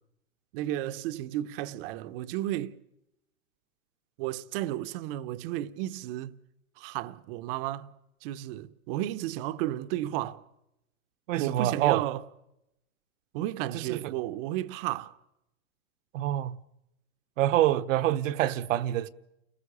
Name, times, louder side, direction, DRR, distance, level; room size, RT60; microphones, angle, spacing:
voice 1, 0.5-2.8 4.2-6.4 6.8-7.9 8.2-10.4 11.4-12.2 13.3-15.2, right 14 dB, 40° right, 0.9 m, -33 dB
voice 2, 11.3-12.0 13.7-14.0 16.1-16.6 17.4-19.1, right 13 dB, 65° right, 1.1 m, -26 dB
29.5 x 19.5 x 6.8 m
supercardioid pair, 155°, 42 cm